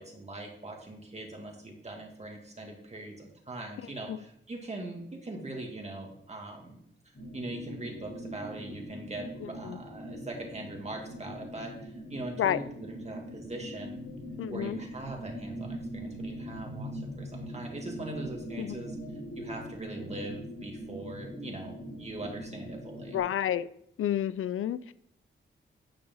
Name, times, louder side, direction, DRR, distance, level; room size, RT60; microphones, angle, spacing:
voice 1, 0.0-6.8 7.3-14.0 14.5-19.0 19.4-23.2, right 2 dB, 30° right, 1 dB, 2.4 m, -41 dB
sound 1, 7.1-23.2, equal, 45° left, 4.2 m, -42 dB
voice 2, 9.4-9.8 12.4-12.6 14.4-14.8 18.6-18.8 23.1-23.7 24.0-24.9, left 11 dB, 85° left, 16 dB, 0.4 m, -30 dB
9.7 x 5.3 x 5.5 m, 0.72 s
wide cardioid pair, 105°, 21 cm